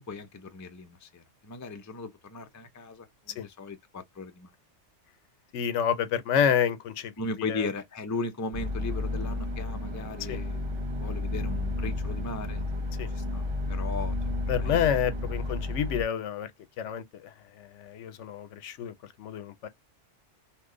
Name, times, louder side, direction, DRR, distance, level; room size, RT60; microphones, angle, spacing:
voice 1, 0.1-4.5 7.2-12.6 13.1-13.4 13.7-14.1 14.6-14.8, left 3 dB, 30° left, 0.3 m, -37 dB
voice 2, 5.5-7.7 10.3-10.4 13.0-13.1 14.5-16.5 16.8-19.7, left 8 dB, 85° left, 1.0 m, -29 dB
sound 1, 8.5-16.0, left 2 dB, 25° right, 0.8 m, -32 dB
2.9 x 2.1 x 3.7 m
omnidirectional pair, 1.2 m